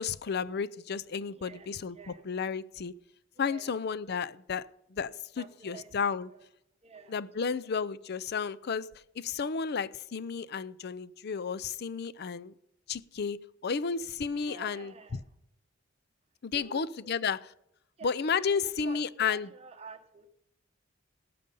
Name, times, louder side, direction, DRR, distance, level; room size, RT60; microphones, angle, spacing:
voice 1, 0.0-2.9 3.4-4.7 4.9-6.3 7.1-8.9 9.2-12.5 12.9-13.4 13.6-14.9 16.4-17.4 18.0-19.5, left 6 dB, 55° left, 17 dB, 0.5 m, -32 dB
voice 2, 1.3-2.3 3.3-3.9 5.3-6.0 6.2-6.5 6.8-7.8 14.3-15.3 16.5-17.1 18.0-18.1 18.5-20.3, right 4 dB, 30° right, 6 dB, 1.2 m, -50 dB
18.0 x 6.8 x 5.4 m, 0.79 s
head